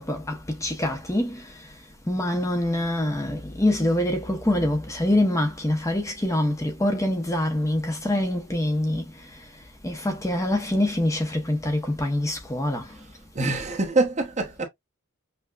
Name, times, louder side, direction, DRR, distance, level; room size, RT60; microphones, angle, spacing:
voice 1, 0.0-1.4 2.1-9.0 9.8-12.9, left 1 dB, 15° left, 0.7 m, -25 dB
voice 2, 12.9-14.6, right 2 dB, 35° right, 0.9 m, -26 dB
5.6 x 2.1 x 2.4 m
head